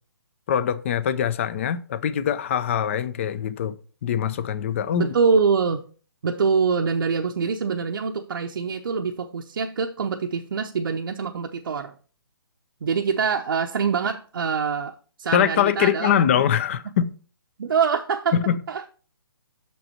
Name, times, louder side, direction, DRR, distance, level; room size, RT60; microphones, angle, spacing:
voice 1, 0.5-3.8 4.0-5.1 15.3-17.2 18.3-18.6, left 9 dB, 35° left, 0.5 m, -23 dB
voice 2, 5.0-5.8 6.2-11.9 12.8-16.2 17.6-18.4 18.7-18.9, right 5 dB, 65° right, 0.7 m, -24 dB
6.5 x 5.3 x 4.3 m
hypercardioid pair, 155°, 13 cm